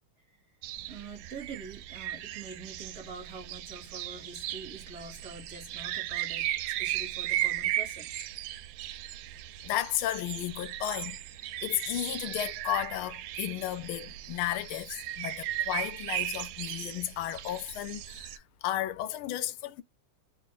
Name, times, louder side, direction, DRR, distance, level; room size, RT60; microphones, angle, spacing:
sound 1, 0.6-18.4, right 13 dB, 85° right, 1.4 m, -36 dB
voice 1, 0.8-8.1, right 4 dB, 50° right, 1.6 m, -45 dB
voice 2, 9.6-11.2 11.6-19.8, left 13 dB, 85° left, 1.5 m, -33 dB
3.9 x 2.4 x 3.7 m
omnidirectional pair, 2.3 m